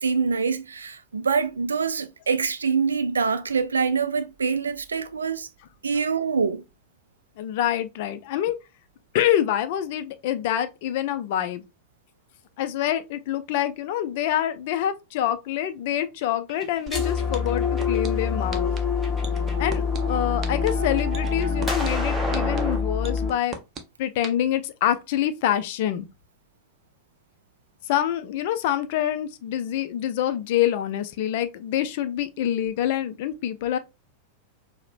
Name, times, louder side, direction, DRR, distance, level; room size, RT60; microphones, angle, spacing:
voice 1, 0.0-5.5 5.8-6.6, right 5 dB, 70° right, 0.3 m, -25 dB
voice 2, 7.4-8.6 9.1-11.6 12.6-18.7 19.6-23.6 24.0-26.1 27.9-33.8, left 11 dB, 50° left, 0.4 m, -26 dB
sound 1, 16.5-18.2 18.8-19.7 20.1-22.8, equal, 5° right, 1.0 m, -33 dB
sound 2, 16.9-23.3, left 5 dB, 20° left, 0.9 m, -26 dB
sound 3, 16.9-17.0 17.3-18.1 18.5-18.8 19.2-20.0 20.4-20.7 21.1-21.9 22.3-22.6 23.0-23.8 24.2-24.3, right 6 dB, 25° right, 0.6 m, -35 dB
4.8 x 2.1 x 2.5 m
figure-of-eight pair, 90°, 0 cm